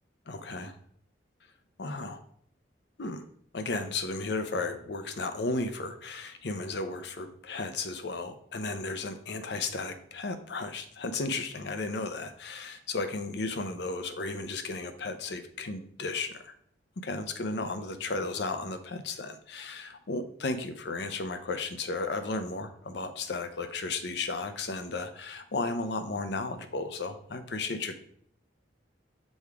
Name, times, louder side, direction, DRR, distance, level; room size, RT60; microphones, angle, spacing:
voice 1, 0.3-0.8 1.8-2.2 3.0-3.2 3.5-16.5 17.0-28.0, left 3 dB, 65° left, 8 dB, 0.7 m, -34 dB
6.3 x 3.5 x 4.8 m, 0.64 s
head